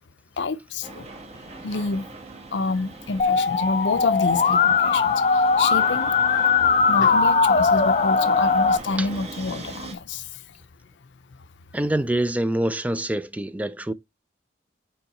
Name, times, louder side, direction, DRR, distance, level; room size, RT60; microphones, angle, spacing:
voice 1, 0.4-1.1 1.6-2.1 2.5-6.3 6.8-10.4, left 4 dB, 85° left, 0.6 m, -28 dB
sound 1, 0.8-9.9, right 3 dB, 35° right, 1.3 m, -40 dB
Musical instrument, 3.2-8.8, left 5 dB, 40° left, 0.5 m, -19 dB
voice 2, 11.7-13.9, right 1 dB, 10° right, 0.4 m, -25 dB
5.5 x 4.6 x 4.1 m
head